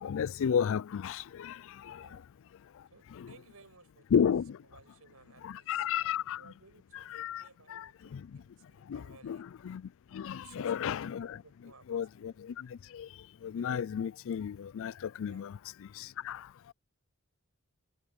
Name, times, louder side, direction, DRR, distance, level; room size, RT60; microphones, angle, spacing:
voice 1, 0.0-1.5 4.1-4.5 5.4-6.4 7.1-7.4 7.7-7.8 8.9-9.4 9.6-9.8 10.1-11.4 11.9-12.3 13.4-14.9 15.2-15.5 16.3-16.4, left 8 dB, 65° left, 0.3 m, -32 dB
voice 2, 2.9-4.1 4.7-9.4 10.3-12.0 12.3-12.4 15.2-15.5, right 4 dB, 80° right, 6.3 m, -59 dB
head